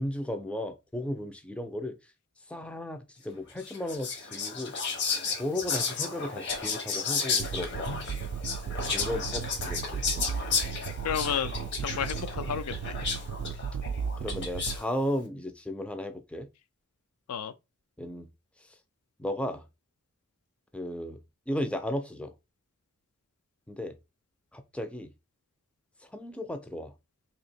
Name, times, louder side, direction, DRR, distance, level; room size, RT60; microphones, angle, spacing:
voice 1, 0.0-2.0 2.5-4.7 5.3-7.9 8.9-10.0 14.2-16.5 18.0-18.3 19.2-19.6 20.7-21.2 21.5-22.3 23.7-24.0 24.5-25.1 26.1-26.9, left 1 dB, 5° left, 0.3 m, -35 dB
Whispering, 3.6-14.9, left 5 dB, 50° left, 0.9 m, -33 dB
sound 1, 7.4-14.8, right 6 dB, 75° right, 0.3 m, -35 dB
voice 2, 11.0-12.9 17.3-17.5, left 8 dB, 80° left, 0.4 m, -32 dB
2.8 x 2.8 x 4.2 m
head